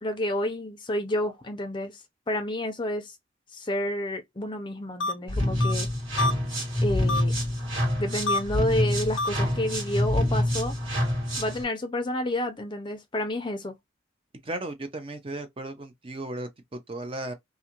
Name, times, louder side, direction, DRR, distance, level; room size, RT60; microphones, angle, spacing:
voice 1, 0.0-3.2 3.5-5.9 6.8-7.3 8.0-10.8 11.4-13.7, left 1 dB, 25° left, 0.5 m, -30 dB
sound 1, 5.0-5.1 5.6-5.7 6.2-6.3 7.1-7.2 8.3-8.4 9.2-9.3, left 2 dB, 70° left, 0.5 m, -25 dB
sound 2, 5.3-11.6, left 1 dB, 85° right, 1.7 m, -26 dB
voice 2, 14.4-17.3, right 2 dB, 30° right, 0.5 m, -35 dB
2.5 x 2.4 x 2.8 m
head